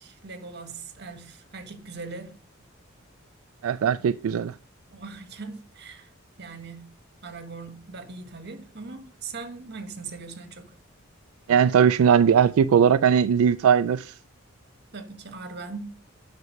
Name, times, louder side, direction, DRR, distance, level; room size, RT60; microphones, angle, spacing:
voice 1, 0.0-2.4 4.0-4.1 4.9-6.1 6.4-6.9 7.2-10.7 14.9-16.0, right 4 dB, 55° right, 1.4 m, -40 dB
voice 2, 3.6-4.5 11.5-14.1, right 7 dB, 80° right, 0.3 m, -19 dB
9.7 x 6.1 x 5.2 m
head